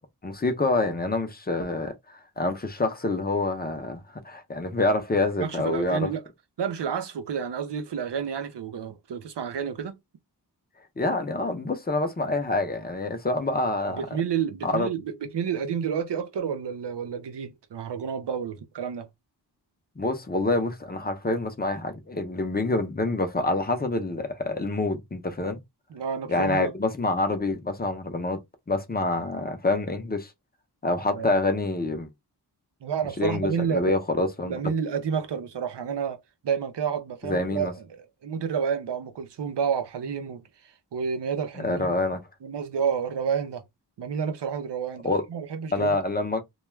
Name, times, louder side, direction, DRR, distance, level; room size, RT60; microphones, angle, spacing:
voice 1, 0.2-1.9 2.4-6.1 11.0-14.0 14.6-14.9 20.0-25.6 26.3-28.4 28.7-30.3 30.8-32.1 33.2-34.5 37.2-37.7 41.6-42.2 45.0-45.2 45.7-46.4, left 2 dB, 25° left, 0.6 m, -26 dB
voice 2, 5.4-6.2 6.6-10.0 14.0-19.1 25.9-26.7 31.1-31.3 32.8-34.0 34.4-40.4 40.9-42.0 42.4-43.6 44.0-46.0, right 7 dB, 80° right, 0.6 m, -30 dB
2.3 x 2.2 x 3.1 m
wide cardioid pair, 95°, 41 cm